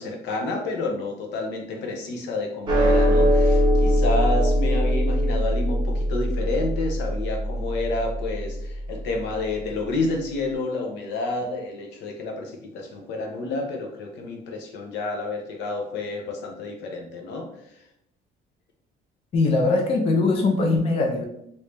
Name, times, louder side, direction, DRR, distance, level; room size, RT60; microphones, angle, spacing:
voice 1, 0.0-17.8, left 2 dB, 80° left, 2 dB, 0.8 m, -29 dB
sound 1, 2.7-9.2, equal, 25° right, 0.7 m, -22 dB
voice 2, 19.3-21.3, left 3 dB, 35° left, 2 dB, 0.4 m, -21 dB
3.2 x 2.7 x 3.2 m, 0.79 s
cardioid pair, 160°, 18 cm